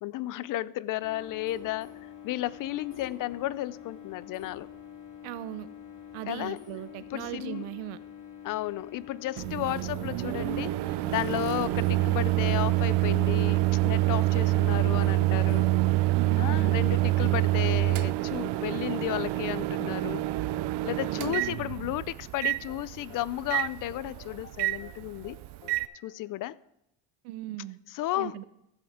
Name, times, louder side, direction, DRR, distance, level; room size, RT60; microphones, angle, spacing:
voice 1, 0.0-4.7 6.3-6.6 7.1-7.7 8.4-15.7 16.4-20.2 20.8-25.4 26.0-26.6 27.9-28.3, left 15 dB, 45° left, 0.4 m, -33 dB
sound 1, 1.0-15.7, left 8 dB, 60° left, 2.9 m, -47 dB
voice 2, 5.2-5.7 6.1-8.0 16.1-17.0 21.0-21.4 27.2-27.8 28.2-28.4, right 13 dB, 85° right, 0.8 m, -38 dB
Microwave oven, 9.4-25.9, right 18 dB, 60° right, 0.5 m, -27 dB
sound 2, 9.8-26.7, left 5 dB, 90° left, 1.6 m, -54 dB
15.0 x 7.9 x 3.6 m
cardioid pair, 110°, 47 cm